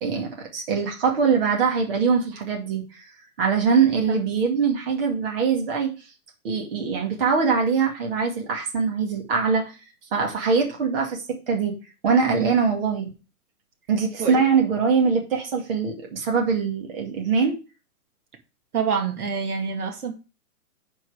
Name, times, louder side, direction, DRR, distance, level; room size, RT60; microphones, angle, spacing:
voice 1, 0.0-2.8 3.4-5.9 6.4-9.8 10.1-11.7 12.0-13.1 13.9-17.6, right 5 dB, 40° right, 2.2 m, -22 dB
voice 2, 18.7-20.1, right 6 dB, 75° right, 2.3 m, -26 dB
9.9 x 4.6 x 4.8 m
hypercardioid pair, 175°, 45 cm